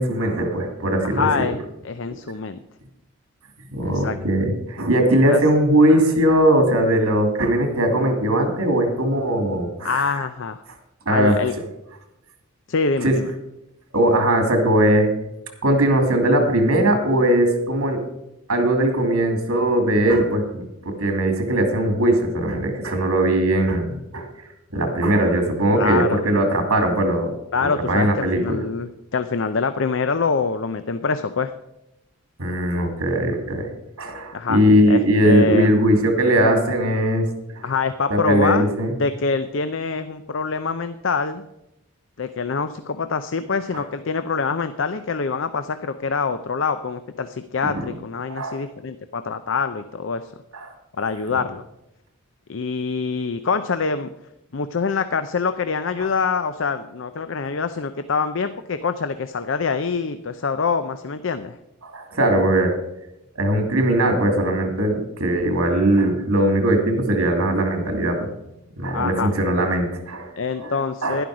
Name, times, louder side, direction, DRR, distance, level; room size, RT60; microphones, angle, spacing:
voice 1, 0.0-1.3 3.7-10.2 11.1-11.4 13.0-13.2 13.9-15.1 15.6-18.0 18.5-24.3 24.7-27.3 27.6-28.6 32.4-33.7 34.0-37.3 37.5-37.6 38.1-38.9 47.6-47.9 48.3-48.6 50.5-50.7 56.0-56.1 61.8-62.8 63.3-68.3 68.8-70.3 70.6-70.7 71.0-71.2, right 1 dB, 85° right, 4 dB, 2.7 m, -20 dB
voice 2, 1.0-2.6 3.8-4.2 5.2-5.4 9.8-10.6 11.1-11.5 12.7-13.3 25.8-26.2 27.5-31.5 34.3-34.6 34.9-35.7 37.6-38.7 39.0-41.4 42.2-50.3 50.9-51.6 52.5-54.1 54.5-61.6 68.9-69.3 70.4-71.3, left 5 dB, 60° left, 10 dB, 0.5 m, -25 dB
11.5 x 11.0 x 4.9 m, 0.88 s
head